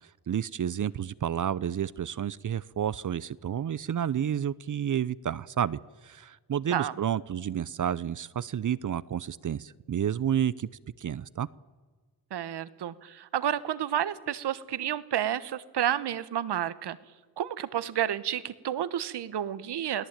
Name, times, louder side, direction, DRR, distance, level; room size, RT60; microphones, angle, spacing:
voice 1, 0.0-10.7 11.0-11.5, right 9 dB, 50° right, 19 dB, 0.7 m, -30 dB
voice 2, 12.3-17.0 17.4-20.1, right 10 dB, 75° right, 15 dB, 1.3 m, -30 dB
28.5 x 18.0 x 9.0 m, 1.5 s
cardioid pair, 75°, 40 cm